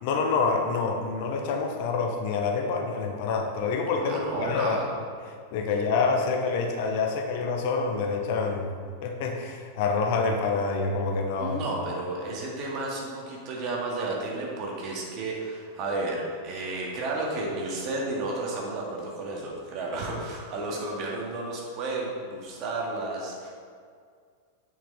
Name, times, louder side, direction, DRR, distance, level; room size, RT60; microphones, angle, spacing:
voice 1, 0.0-4.8 5.5-8.7 9.0-11.6, left 4 dB, 50° left, 3 dB, 0.9 m, -27 dB
voice 2, 4.0-4.9 11.4-23.5, right 2 dB, 40° right, -2 dB, 1.9 m, -32 dB
8.6 x 6.3 x 4.0 m, 2.1 s
figure-of-eight pair, 90°, 0 cm